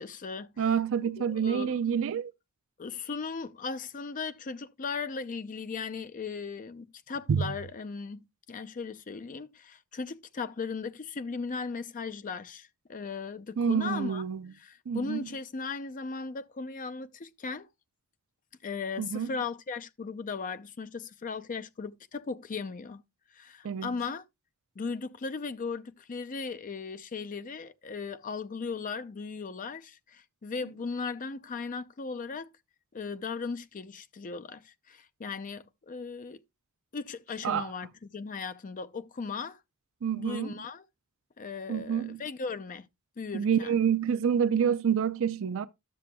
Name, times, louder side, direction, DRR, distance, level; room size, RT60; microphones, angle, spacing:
voice 1, 0.0-0.7 1.0-1.8 2.8-14.2 14.6-17.7 18.6-23.0 23.3-24.2 24.8-32.5 32.9-36.4 36.9-39.6 40.1-40.8 41.4-42.9 43.2-43.8, left 4 dB, 40° left, 0.5 m, -37 dB
voice 2, 0.6-2.3 7.3-7.4 13.6-14.5 14.9-15.3 19.0-19.3 23.6-23.9 37.4-37.7 40.0-40.6 41.7-42.2 43.3-45.7, right 7 dB, 65° right, 0.4 m, -28 dB
12.5 x 6.7 x 2.2 m
head